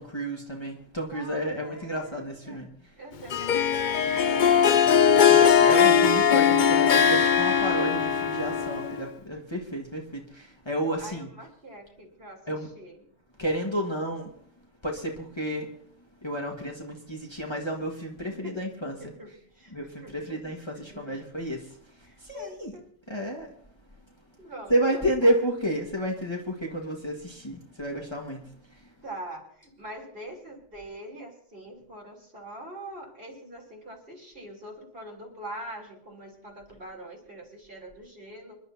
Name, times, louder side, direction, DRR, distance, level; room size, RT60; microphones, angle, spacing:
voice 1, 0.0-2.9 5.1-11.3 12.5-12.7 13.4-14.3 14.8-15.7 16.2-19.0 19.7-22.7 23.1-23.5 24.7-28.9, right 1 dB, 20° left, 0 dB, 1.7 m, -31 dB
voice 2, 1.1-2.6 3.0-4.8 11.0-12.4 12.8-13.0 18.2-18.6 19.0-19.7 20.0-20.4 20.7-21.2 22.1-22.8 24.4-25.0 29.0-38.6, right 1 dB, 50° right, -2 dB, 3.7 m, -43 dB
Harp, 3.3-9.1, left 7 dB, 50° left, 0.6 m, -20 dB
Laughter / Crowd, 3.6-7.1, right 2 dB, 85° right, 4.6 m, -43 dB
26.5 x 11.5 x 2.8 m, 0.65 s
omnidirectional pair, 1.2 m